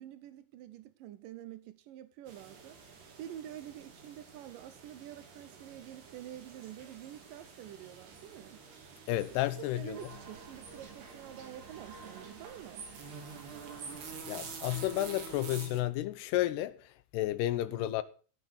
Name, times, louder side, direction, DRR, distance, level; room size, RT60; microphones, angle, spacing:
voice 1, 0.0-2.8 3.2-8.6 9.3-9.4 9.8-12.9 17.7-17.9, right 11 dB, 85° right, 1.9 m, -48 dB
sound 1, 2.3-15.8, right 5 dB, 65° right, 5.0 m, -49 dB
voice 2, 9.1-10.0 14.3-18.0, left 15 dB, 80° left, 2.7 m, -32 dB
sound 2, 9.9-15.3, right 4 dB, 45° right, 3.3 m, -53 dB
16.5 x 6.7 x 6.7 m
omnidirectional pair, 5.1 m